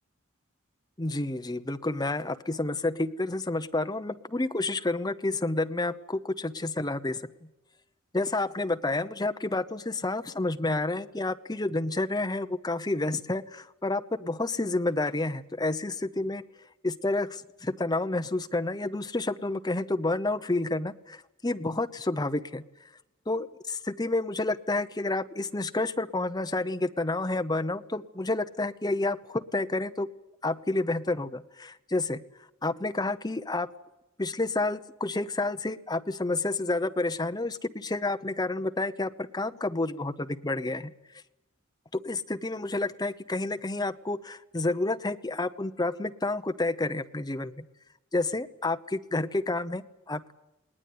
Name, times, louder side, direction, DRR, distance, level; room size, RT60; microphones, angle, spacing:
voice 1, 1.0-7.2 8.1-16.4 16.8-22.6 23.3-30.1 30.4-32.2 32.6-33.7 34.2-40.9 42.0-47.6 48.1-50.3, left 2 dB, 20° left, 9 dB, 0.9 m, -30 dB
19.5 x 19.5 x 9.6 m, 0.93 s
head